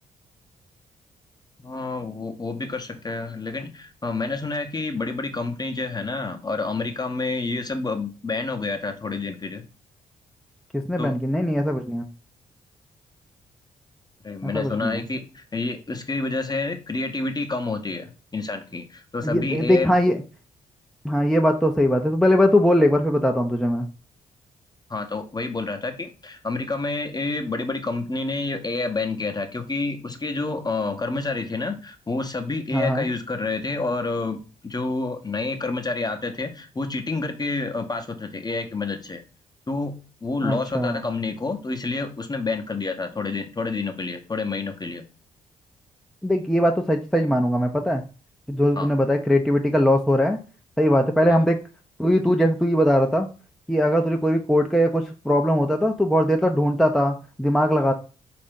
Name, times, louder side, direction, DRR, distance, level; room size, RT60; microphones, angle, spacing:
voice 1, 1.6-9.7 11.0-11.2 14.2-19.9 24.9-39.2 39.7-39.9 40.2-45.1 48.8-48.9 51.3-51.4, left 3 dB, 25° left, 6 dB, 0.8 m, -28 dB
voice 2, 10.7-12.0 14.4-15.0 19.2-20.2 21.0-23.9 32.7-33.1 40.4-41.0 46.2-48.0 48.5-50.4 50.8-51.6 52.0-53.3 53.7-57.9, equal, ahead, 3 dB, 0.5 m, -20 dB
4.1 x 2.5 x 3.7 m, 0.34 s
hypercardioid pair, 50°, 16 cm